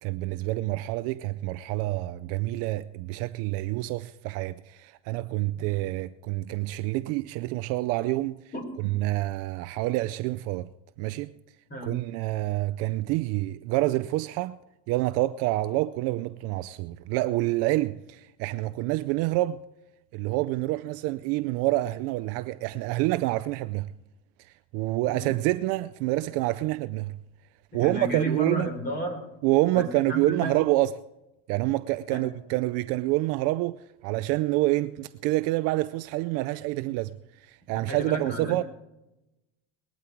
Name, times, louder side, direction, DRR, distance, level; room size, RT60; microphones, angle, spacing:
voice 1, 0.0-8.4 8.8-10.7 11.0-11.3 11.8-14.6 14.9-19.6 20.1-23.9 24.4-27.2 27.7-28.7 29.4-30.9 31.5-38.6, right 18 dB, 45° right, 0.4 m, -27 dB
voice 2, 25.0-25.4 27.8-29.2 29.7-30.6 32.1-32.2 37.9-38.6, right 1 dB, 25° left, 3.6 m, -32 dB
20.0 x 12.0 x 4.6 m
supercardioid pair, 160°, 37 cm